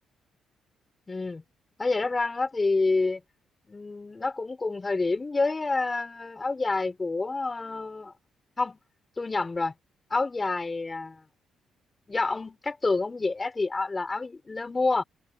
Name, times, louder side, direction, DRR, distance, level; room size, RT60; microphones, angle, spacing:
voice 1, 1.1-1.4 1.8-3.2 3.7-8.1 8.6-8.8 9.2-9.7 10.1-11.2 12.1-15.0, left 3 dB, 25° left, 5.1 m, -28 dB
open air
cardioid pair, 90°, 0 cm